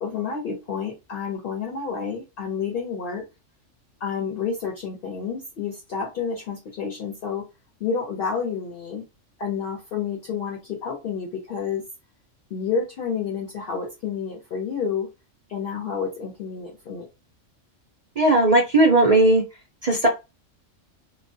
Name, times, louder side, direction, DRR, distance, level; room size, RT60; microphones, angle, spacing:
voice 1, 0.0-3.2 4.0-7.4 7.8-9.0 9.4-11.8 12.5-15.1 15.5-17.1, left 6 dB, 55° left, -1 dB, 0.7 m, -29 dB
voice 2, 18.2-19.4 19.8-20.1, right 2 dB, 55° right, 0 dB, 0.4 m, -17 dB
2.2 x 2.1 x 2.6 m, 0.25 s
omnidirectional pair, 1.3 m